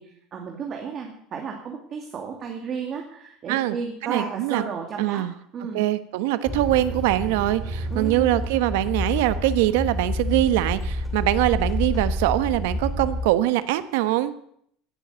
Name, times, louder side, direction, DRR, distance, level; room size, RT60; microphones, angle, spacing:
voice 1, 0.0-5.3 5.5-5.8 7.9-8.3, right 6 dB, 35° right, 2 dB, 2.4 m, -33 dB
voice 2, 4.0-4.6 5.0-5.3 5.7-14.3, right 15 dB, 80° right, 13 dB, 1.1 m, -23 dB
sound 1, 6.5-13.3, left 1 dB, 5° left, 2.8 m, -29 dB
16.5 x 7.9 x 9.3 m, 0.69 s
cardioid pair, 145°, 0 cm